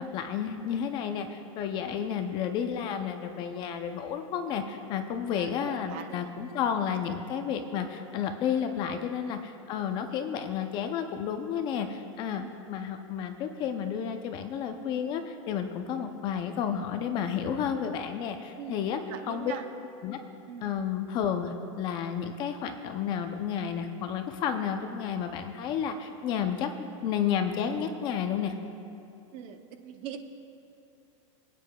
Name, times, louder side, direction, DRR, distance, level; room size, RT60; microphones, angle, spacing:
voice 1, 0.0-19.0 19.3-19.5 20.0-20.2 20.6-26.7 27.0-28.5, left 8 dB, 30° left, 6 dB, 0.5 m, -31 dB
voice 2, 5.4-6.3 9.2-9.3 12.3-12.7 18.6-18.8 19.1-19.6 20.5-20.7 29.3-30.2, right 9 dB, 35° right, 6 dB, 0.6 m, -42 dB
25.5 x 9.1 x 2.3 m, 2.7 s
supercardioid pair, 165°, 16 cm